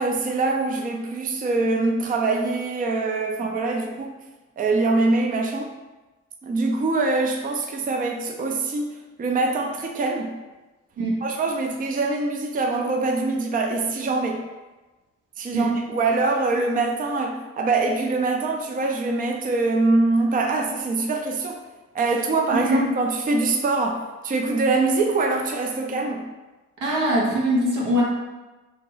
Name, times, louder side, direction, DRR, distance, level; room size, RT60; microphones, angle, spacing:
voice 1, 0.0-4.1 4.6-5.7 6.4-10.3 11.2-14.4 15.4-21.6 21.9-26.2, right 3 dB, 30° right, 2 dB, 0.5 m, -24 dB
voice 2, 11.0-11.3 15.5-15.7 22.5-22.8 26.8-28.0, right 1 dB, 85° right, -3 dB, 1.1 m, -22 dB
2.9 x 2.9 x 3.9 m, 1.1 s
cardioid pair, 90°, 30 cm